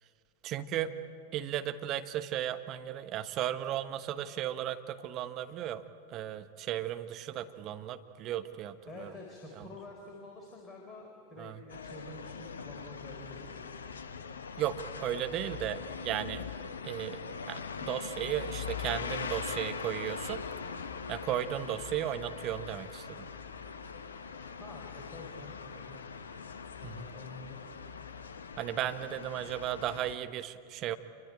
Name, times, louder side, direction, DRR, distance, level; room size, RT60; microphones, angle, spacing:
voice 1, 0.4-0.9 1.3-5.8 6.1-9.1 9.6-9.7 11.4-11.6 14.6-16.4 16.8-17.2 17.5-20.4 21.1-23.3 26.8-27.0 28.6-30.9, right 12 dB, 35° right, 9 dB, 1.2 m, -35 dB
voice 2, 8.9-13.7 24.6-25.9 26.8-27.7 28.8-28.9, left 2 dB, 20° left, 0 dB, 4.5 m, -48 dB
sound 1, 11.7-30.2, left 6 dB, 70° left, 1.1 m, -41 dB
28.0 x 23.5 x 8.7 m, 2.4 s
figure-of-eight pair, 90°, 0 cm